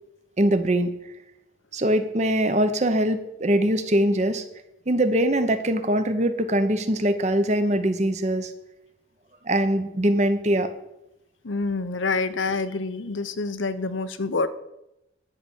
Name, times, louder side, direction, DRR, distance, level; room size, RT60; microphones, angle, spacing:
voice 1, 0.4-0.9 1.7-4.4 4.9-8.5 9.5-10.7, right 1 dB, 35° right, 9 dB, 0.9 m, -22 dB
voice 2, 11.4-14.5, left 3 dB, 85° left, 11 dB, 0.8 m, -27 dB
11.0 x 5.7 x 8.0 m, 0.88 s
head